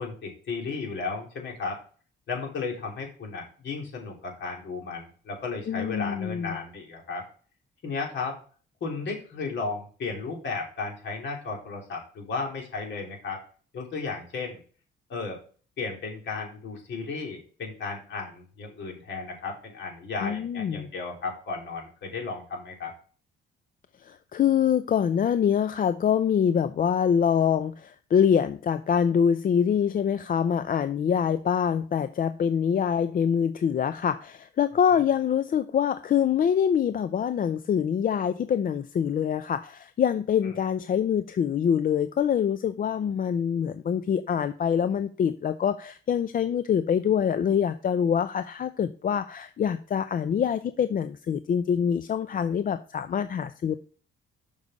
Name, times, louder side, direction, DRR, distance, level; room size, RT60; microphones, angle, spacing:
voice 1, 0.0-1.8 2.3-7.3 7.8-8.4 8.8-13.4 13.7-14.6 15.1-15.4 15.8-22.9, left 4 dB, 65° left, 0 dB, 3.2 m, -34 dB
voice 2, 5.7-6.6 20.2-20.9 24.0-53.8, left 8 dB, 45° left, 11 dB, 0.5 m, -25 dB
6.7 x 5.4 x 4.9 m, 0.40 s
cardioid pair, 90°, 20 cm